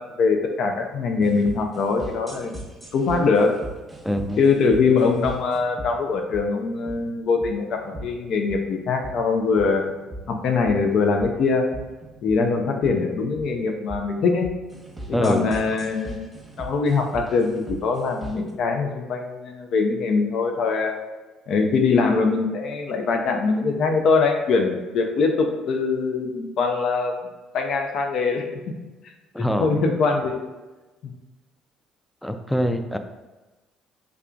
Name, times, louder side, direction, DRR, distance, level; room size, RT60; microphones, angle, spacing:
voice 1, 0.0-2.5 2.9-3.5 4.4-9.9 10.3-11.6 12.2-14.5 15.1-20.9 21.5-27.1 27.5-28.4 29.6-30.4 31.0-31.1, left 4 dB, 65° left, 3 dB, 0.5 m, -22 dB
sound 1, 1.2-18.5, right 1 dB, 15° right, 0.9 m, -40 dB
voice 2, 4.0-4.4 15.1-15.4 29.3-29.7 32.2-33.0, equal, 5° left, 7 dB, 0.3 m, -24 dB
3.7 x 3.3 x 2.3 m, 1.2 s
supercardioid pair, 75°, 0 cm